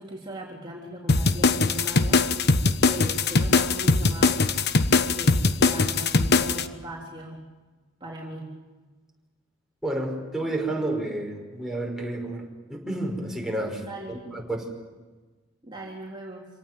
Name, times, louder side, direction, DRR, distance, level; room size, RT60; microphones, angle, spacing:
voice 1, 0.0-2.2 2.8-4.4 5.1-7.4 8.0-8.5 13.8-14.2 15.6-16.5, equal, 25° right, -3 dB, 3.6 m, -38 dB
sound 1, 1.1-6.6, left 3 dB, 60° left, 1.2 m, -21 dB
voice 2, 9.8-14.7, right 1 dB, ahead, 0 dB, 5.4 m, -31 dB
26.5 x 18.5 x 9.3 m, 1.3 s
head